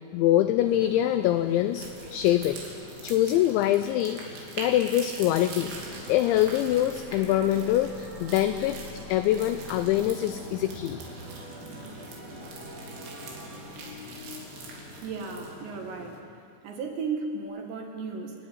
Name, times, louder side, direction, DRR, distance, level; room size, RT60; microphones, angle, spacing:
voice 1, 0.1-4.2 4.6-5.7 6.1-8.8 9.1-11.0, left 13 dB, 90° left, 10 dB, 2.6 m, -24 dB
Motorcycle, 0.6-16.2, left 4 dB, 65° left, 3.8 m, -46 dB
sound 1, 1.7-15.6, right 4 dB, 90° right, 5.7 m, -44 dB
sound 2, 4.6-14.9, right 1 dB, 45° right, 3.6 m, -45 dB
voice 2, 15.0-16.2 16.6-18.3, right 4 dB, 65° right, 2 dB, 3.6 m, -34 dB
29.5 x 10.0 x 9.4 m, 2.2 s
omnidirectional pair, 6.0 m